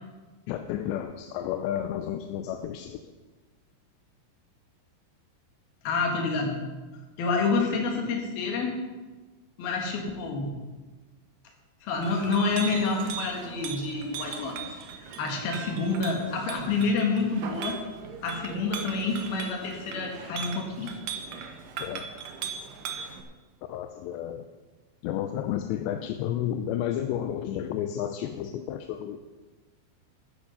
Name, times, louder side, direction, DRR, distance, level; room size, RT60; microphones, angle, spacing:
voice 1, 0.5-3.1 21.8-22.1 23.7-24.5 25.0-29.2, left 10 dB, 80° left, 7 dB, 2.7 m, -31 dB
voice 2, 5.8-6.6 7.2-8.8 9.6-10.5 11.8-14.5 15.2-17.8 18.2-20.9, left 4 dB, 60° left, 1 dB, 3.5 m, -28 dB
Chink clink, 11.9-23.2, right 6 dB, 75° right, 2.0 m, -39 dB
13.0 x 9.6 x 5.5 m, 1.3 s
omnidirectional pair, 5.4 m